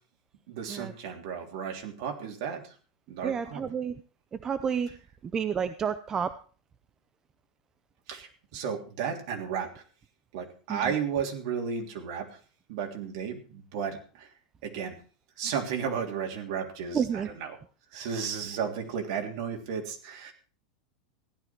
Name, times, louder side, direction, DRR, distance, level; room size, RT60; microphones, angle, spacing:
voice 1, 0.5-2.7 3.1-3.6 8.1-9.8 10.3-12.4 12.7-14.3 14.6-15.0 15.4-17.6 17.9-20.3, right 7 dB, 50° right, 2 dB, 3.3 m, -34 dB
voice 2, 3.2-4.0 4.4-4.9 5.3-6.3 10.7-10.8 16.9-17.3, right 7 dB, 15° right, 11 dB, 0.5 m, -29 dB
15.5 x 11.5 x 4.5 m, 0.39 s
supercardioid pair, 165°, 4 cm